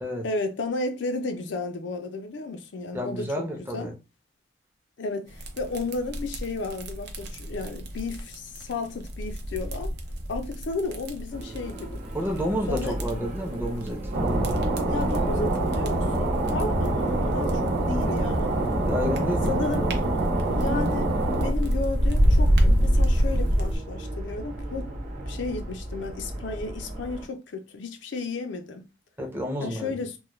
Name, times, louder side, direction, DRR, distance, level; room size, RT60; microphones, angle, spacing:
voice 1, 0.2-3.9 5.0-9.9 10.3-12.0 12.7-13.0 14.9-18.6 19.5-19.9 20.5-21.1 21.4-24.9 25.3-28.8 29.6-30.2, left 3 dB, 75° left, 0.4 m, -33 dB
voice 2, 2.9-3.9 12.1-14.6 18.8-19.9 29.2-30.0, equal, 10° right, 0.5 m, -30 dB
sound 1, 5.3-23.8, equal, 60° right, 0.5 m, -28 dB
sound 2, 11.3-27.3, right 1 dB, 40° right, 0.9 m, -36 dB
sound 3, 14.1-21.5, right 1 dB, 90° right, 0.9 m, -25 dB
2.2 x 2.1 x 3.0 m
head